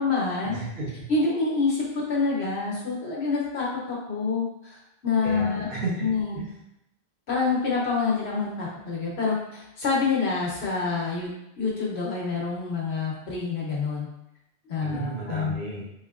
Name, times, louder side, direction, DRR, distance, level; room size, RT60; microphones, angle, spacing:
voice 1, 0.0-0.6 1.1-5.7 6.0-6.4 7.3-11.3 11.6-14.1 14.7-15.6, left 4 dB, 80° left, -4 dB, 1.2 m, -27 dB
voice 2, 0.5-1.0 5.2-6.1 6.4-6.5 14.8-15.9, right 2 dB, 60° right, -5 dB, 1.2 m, -32 dB
3.7 x 3.2 x 2.4 m, 0.82 s
omnidirectional pair, 1.1 m